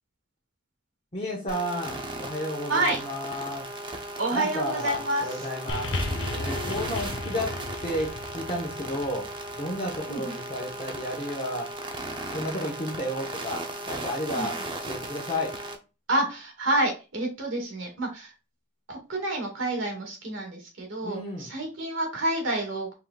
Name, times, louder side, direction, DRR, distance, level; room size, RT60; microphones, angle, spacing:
voice 1, 1.1-3.7 4.3-5.9 6.4-7.5 7.8-9.3 9.6-11.7 12.3-15.6 21.0-21.5, left 1 dB, 30° left, -4 dB, 0.9 m, -32 dB
sound 1, 1.5-15.7, right 1 dB, 25° right, 0.6 m, -36 dB
voice 2, 2.7-3.0 4.2-5.5 10.1-10.3 14.3-14.5 16.1-18.3 18.9-22.9, right 2 dB, 70° right, 1 dB, 1.7 m, -28 dB
sound 2, 5.7-10.2 11.1-11.2, left 2 dB, 65° left, 0.6 m, -35 dB
4.7 x 3.6 x 2.3 m, 0.30 s
head